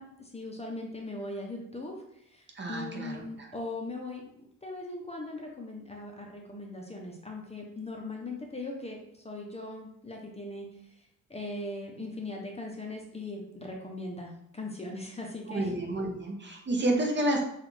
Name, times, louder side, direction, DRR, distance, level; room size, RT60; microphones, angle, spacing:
voice 1, 0.0-2.0 2.3-10.7 11.3-15.7, left 2 dB, 20° left, 0 dB, 0.6 m, -39 dB
voice 2, 2.5-3.5 15.5-17.4, right 1 dB, 40° right, 1 dB, 0.8 m, -30 dB
6.0 x 2.4 x 3.2 m, 0.74 s
wide cardioid pair, 140°, 30 cm